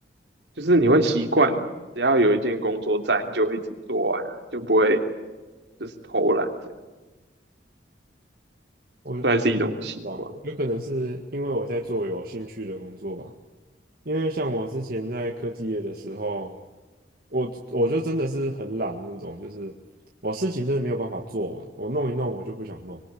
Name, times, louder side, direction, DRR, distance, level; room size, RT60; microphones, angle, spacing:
voice 1, 0.6-1.6 2.0-3.6 3.9-5.0 5.8-6.5 9.2-10.3, right 1 dB, 70° right, 5 dB, 3.1 m, -22 dB
voice 2, 10.0-13.3 14.1-16.6 17.3-19.7 20.2-23.0, right 1 dB, 55° right, 1 dB, 2.0 m, -29 dB
25.5 x 22.5 x 8.7 m, 1.2 s
head